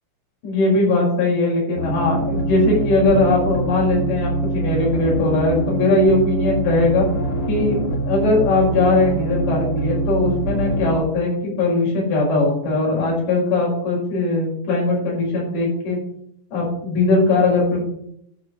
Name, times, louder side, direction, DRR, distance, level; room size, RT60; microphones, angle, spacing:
voice 1, 0.4-7.1 7.5-7.8 8.1-16.0 16.5-17.9, left 2 dB, 70° left, -4 dB, 7.6 m, -19 dB
sound 1, 1.8-11.0, right 2 dB, 85° left, 1.1 m, -24 dB
12.0 x 5.3 x 7.4 m, 0.71 s
omnidirectional pair, 5.3 m